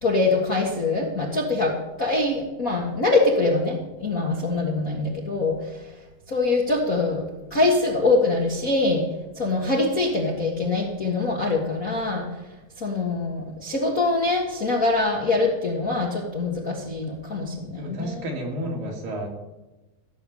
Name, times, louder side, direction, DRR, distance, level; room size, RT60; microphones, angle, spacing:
voice 1, 0.0-5.5 6.3-9.1 9.4-12.3 12.8-18.2, left 3 dB, 40° left, -1 dB, 1.3 m, -24 dB
voice 2, 17.8-19.3, equal, 70° right, 0 dB, 4.3 m, -31 dB
15.5 x 6.9 x 8.4 m, 1.1 s
omnidirectional pair, 4.1 m